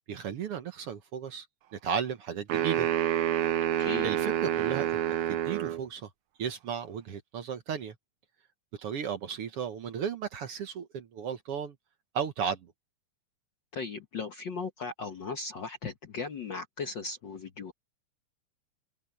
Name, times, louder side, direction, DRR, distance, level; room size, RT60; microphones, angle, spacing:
voice 1, 0.1-1.5 1.7-2.9 4.0-6.1 6.4-7.9 8.8-11.7 12.1-12.6, right 7 dB, 60° right, 1.8 m, -34 dB
sound 1, 2.5-5.8, right 11 dB, 80° right, 1.2 m, -28 dB
voice 2, 3.8-4.1 13.7-17.7, left 4 dB, 50° left, 1.4 m, -37 dB
open air
omnidirectional pair, 3.4 m